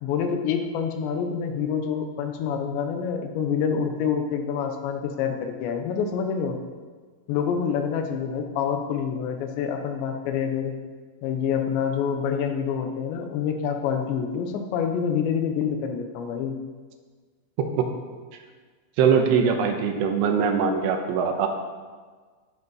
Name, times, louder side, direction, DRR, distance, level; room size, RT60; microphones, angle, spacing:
voice 1, 0.0-6.6 7.3-10.8 11.2-16.6, left 7 dB, 80° left, 5 dB, 3.2 m, -27 dB
voice 2, 19.0-21.5, right 6 dB, 80° right, 4 dB, 3.0 m, -22 dB
10.0 x 9.6 x 5.4 m, 1.5 s
omnidirectional pair, 5.1 m